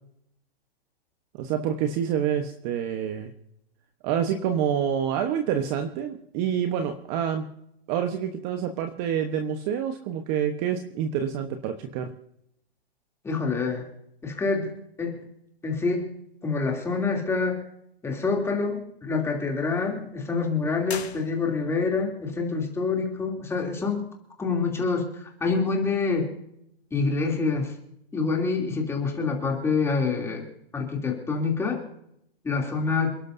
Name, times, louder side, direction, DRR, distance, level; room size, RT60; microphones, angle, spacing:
voice 1, 1.3-3.3 4.0-7.5 7.9-12.1, right 8 dB, 30° right, 7 dB, 1.1 m, -27 dB
voice 2, 13.2-13.9 14.2-15.2 15.6-16.1 16.4-17.6 18.0-24.0 24.4-26.3 26.9-27.7 28.1-30.4 30.7-31.8 32.4-33.2, left 4 dB, 10° left, 0 dB, 3.0 m, -26 dB
sound 1, 20.8-21.9, left 7 dB, 85° left, 2.9 m, -39 dB
28.5 x 11.5 x 2.7 m, 0.75 s
hypercardioid pair, 145°, 31 cm